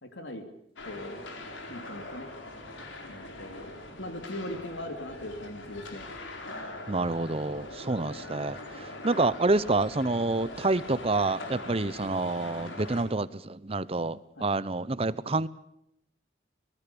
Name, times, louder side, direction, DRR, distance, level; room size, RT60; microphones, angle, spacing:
voice 1, 0.0-0.5 0.9-1.2 1.7-2.3 3.1-6.1 14.4-14.5, left 1 dB, 70° left, 6 dB, 3.0 m, -40 dB
sound 1, 0.8-13.0, left 2 dB, 85° left, 4.5 m, -42 dB
voice 2, 6.9-15.5, right 2 dB, 30° right, 18 dB, 0.8 m, -28 dB
25.0 x 19.5 x 7.1 m, 0.76 s
head